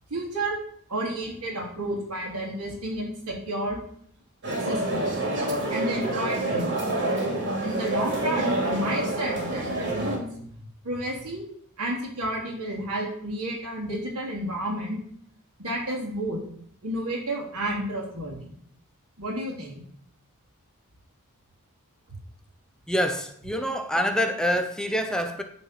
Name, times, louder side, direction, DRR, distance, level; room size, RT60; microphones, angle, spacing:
voice 1, 0.1-0.6 0.9-3.8 4.6-5.1 5.7-6.8 7.6-11.4 11.8-15.0 15.6-16.4 16.8-18.4 19.2-19.8, right 1 dB, 85° right, 3.5 m, -31 dB
sound 1, 4.4-10.2, right 2 dB, 55° right, 3.1 m, -27 dB
voice 2, 22.9-25.4, equal, 5° left, 0.7 m, -26 dB
9.9 x 4.4 x 7.7 m
head